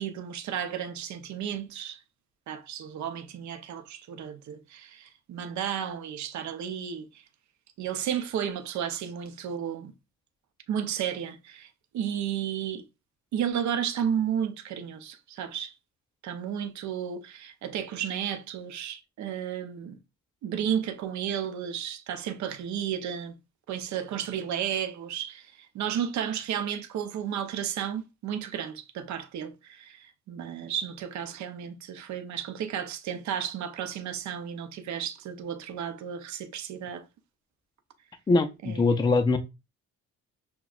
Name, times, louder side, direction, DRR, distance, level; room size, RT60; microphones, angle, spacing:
voice 1, 0.0-2.0 2.5-7.1 7.8-9.9 10.7-11.7 11.9-12.8 13.3-15.7 16.2-20.0 20.4-23.3 23.7-37.1 38.6-38.8, right 9 dB, 70° right, 0.6 m, -33 dB
voice 2, 38.3-39.4, left 3 dB, 15° left, 0.4 m, -22 dB
5.8 x 2.2 x 2.3 m
cardioid pair, 90°, 30 cm